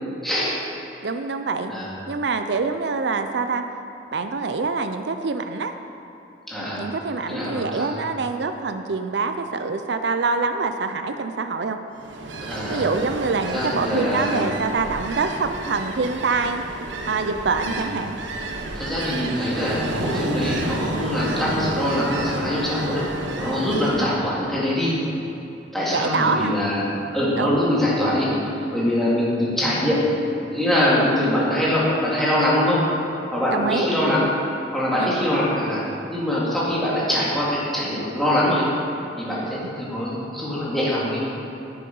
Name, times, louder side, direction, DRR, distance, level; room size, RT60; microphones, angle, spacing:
voice 1, 0.2-0.6 1.7-1.9 6.5-6.8 7.3-7.9 12.4-12.9 13.5-14.4 17.6-17.8 18.7-23.1 23.4-24.9 25.7-26.8 27.1-33.0 33.3-34.2 34.7-35.8 36.1-38.7 39.2-41.3, left 1 dB, ahead, -8 dB, 2.5 m, -23 dB
voice 2, 1.0-1.7 2.1-3.6 4.1-5.7 6.8-11.8 12.7-16.6 17.1-18.2 25.9-26.5 27.4-27.5 33.5-33.9 35.0-35.1 39.3-39.7, right 4 dB, 60° right, 7 dB, 0.5 m, -25 dB
Ocean, 12.0-24.1, right 2 dB, 80° right, 0.9 m, -31 dB
10.5 x 8.5 x 5.5 m, 2.8 s
head